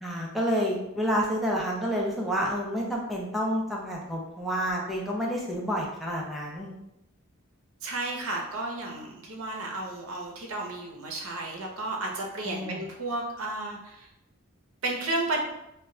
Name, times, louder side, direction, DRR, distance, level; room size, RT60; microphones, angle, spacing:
voice 1, 0.0-6.7 12.4-12.9, equal, ahead, -3 dB, 0.4 m, -29 dB
voice 2, 7.8-14.1 14.8-15.4, right 2 dB, 75° right, 0 dB, 0.6 m, -33 dB
2.2 x 2.1 x 3.6 m, 0.86 s
head